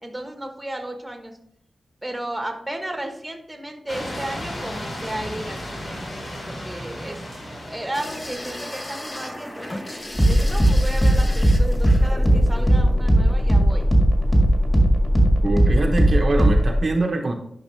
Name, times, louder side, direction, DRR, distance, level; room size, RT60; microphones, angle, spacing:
voice 1, 0.0-1.4 2.0-7.2 7.7-13.9, right 1 dB, 10° right, 4 dB, 1.1 m, -34 dB
sound 1, 3.9-8.8, left 1 dB, 65° left, 3.4 m, -34 dB
sound 2, 7.9-13.9 15.2-15.5 15.8-15.9, left 1 dB, 25° left, 0.9 m, -37 dB
sound 3, 8.1-16.8, equal, 10° left, 1.7 m, -18 dB
voice 2, 15.4-17.3, right 2 dB, 45° right, 3 dB, 0.8 m, -23 dB
10.5 x 5.6 x 3.1 m, 0.72 s
wide cardioid pair, 135°, 0 cm